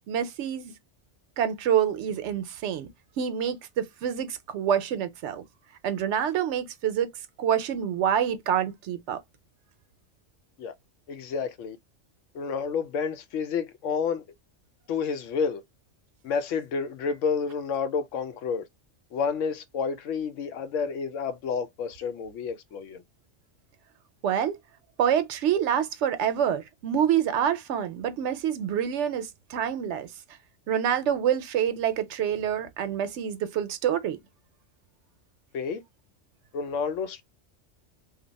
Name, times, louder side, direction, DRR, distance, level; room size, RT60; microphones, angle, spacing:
voice 1, 0.1-0.7 1.4-2.9 3.2-5.4 5.8-7.1 7.4-9.2 24.2-24.6 25.0-30.1 30.7-34.2, right 9 dB, 75° right, 0.9 m, -27 dB
voice 2, 11.1-11.8 12.3-14.2 14.9-15.6 16.2-18.7 19.1-23.0 35.5-35.8 36.5-37.2, left 6 dB, 90° left, 0.9 m, -30 dB
2.7 x 2.2 x 3.9 m
omnidirectional pair, 1.2 m